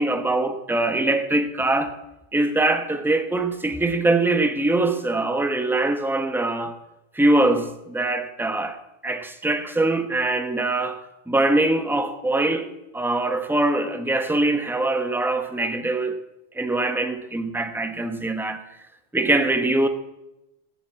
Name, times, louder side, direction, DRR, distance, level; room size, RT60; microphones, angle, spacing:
voice 1, 0.0-1.9 2.3-6.8 7.1-11.0 11.3-12.7 12.9-16.2 16.5-18.6 19.1-19.9, right 2 dB, ahead, 0.9 m, -23 dB
14.0 x 9.1 x 7.6 m
omnidirectional pair, 1.1 m